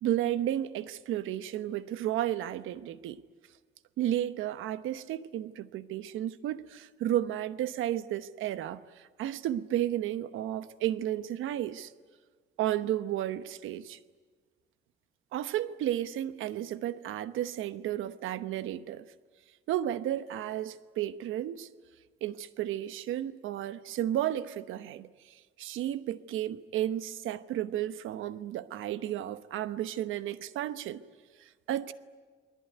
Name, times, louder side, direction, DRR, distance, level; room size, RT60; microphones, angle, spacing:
voice 1, 0.0-3.2 4.0-11.9 12.6-14.0 15.3-19.1 19.7-21.7 22.2-31.0 31.4-31.9, right 12 dB, 85° right, 1.1 m, -33 dB
29.0 x 20.5 x 9.4 m
cardioid pair, 90°, 20 cm